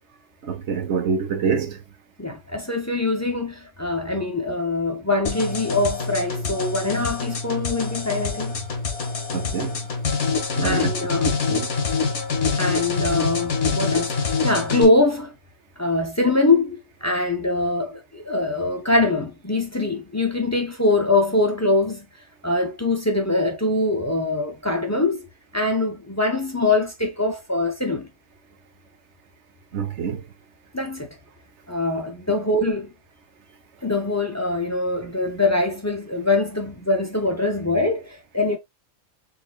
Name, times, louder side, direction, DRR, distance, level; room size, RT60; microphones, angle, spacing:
voice 1, 0.4-1.8 9.3-9.8 10.5-10.9 11.2-11.7 29.7-30.2, right 6 dB, 55° right, 1.1 m, -26 dB
voice 2, 2.2-8.6 10.6-11.3 12.5-15.3 15.8-22.1 22.4-25.3 25.5-28.1 30.7-31.1 31.7-32.9 33.8-38.6, left 2 dB, 20° left, 0.5 m, -23 dB
sound 1, 5.3-14.9, left 5 dB, 55° left, 1.7 m, -25 dB
4.6 x 3.5 x 2.4 m
omnidirectional pair, 1.5 m